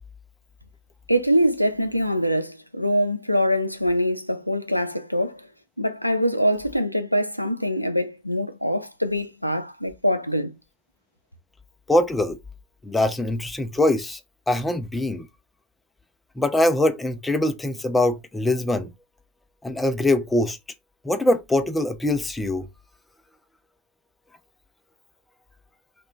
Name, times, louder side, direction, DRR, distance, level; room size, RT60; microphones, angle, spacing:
voice 1, 1.1-5.4 5.8-10.5, equal, 90° left, 0.3 m, -23 dB
voice 2, 11.9-12.4 12.8-14.2 14.5-15.3 16.4-18.9 19.6-20.6 21.0-22.7, left 1 dB, 10° left, 0.4 m, -23 dB
2.3 x 2.2 x 3.6 m
figure-of-eight pair, 90°, 0 cm